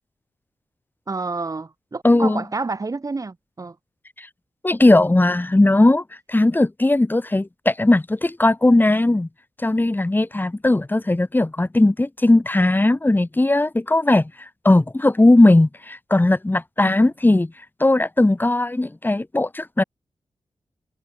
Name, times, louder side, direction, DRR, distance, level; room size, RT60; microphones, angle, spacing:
voice 1, 1.1-3.8 16.8-17.1, right 3 dB, 40° right, 4.2 m, -29 dB
voice 2, 2.0-2.4 4.2-4.3 4.6-9.3 9.6-17.5 17.8-19.8, left 2 dB, 20° left, 7.2 m, -18 dB
cardioid pair, 70°, 9 cm